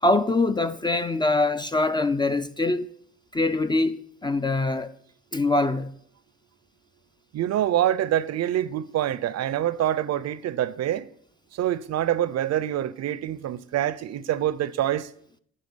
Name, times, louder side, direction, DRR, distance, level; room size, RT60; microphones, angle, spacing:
voice 1, 0.0-2.9 3.3-4.9 5.3-5.9, left 2 dB, 15° left, 0.3 m, -23 dB
voice 2, 7.3-11.1 11.5-15.1, right 11 dB, 60° right, 0.5 m, -26 dB
9.6 x 3.8 x 6.7 m
cardioid pair, 90°, 30 cm